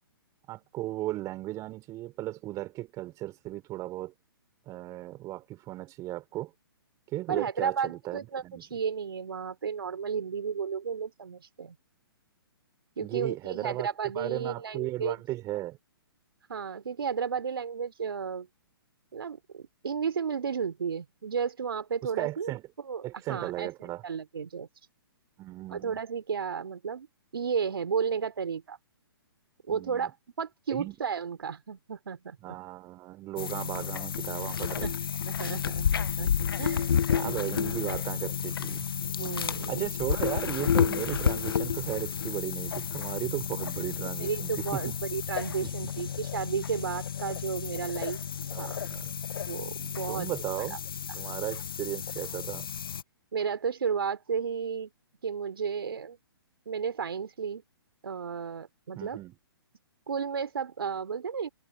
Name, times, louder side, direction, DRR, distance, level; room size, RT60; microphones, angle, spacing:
voice 1, 0.5-4.1 4.7-6.5 7.1-8.6 13.0-13.9 14.1-15.8 22.0-22.6 23.0-24.0 25.4-26.0 29.7-30.1 30.7-31.0 32.4-34.9 37.1-38.9 39.7-45.0 45.6-45.9 48.5-49.1 50.1-50.8 51.1-52.7 58.9-59.3, right 16 dB, 25° right, 4.8 m, -36 dB
voice 2, 7.3-11.7 13.0-15.2 16.5-18.5 19.1-22.5 22.8-24.7 25.7-27.1 27.3-28.8 29.7-32.5 34.8-34.9 35.3-36.9 39.2-39.9 44.2-48.2 48.6-48.8 49.5-50.3 50.6-50.8 51.1-51.2 53.3-54.9 55.2-56.2 56.7-57.6 58.0-59.2 60.1-61.5, right 6 dB, 70° right, 3.2 m, -33 dB
sound 1, 33.4-53.0, left 8 dB, 65° left, 0.9 m, -31 dB
figure-of-eight pair, 125°, 13 cm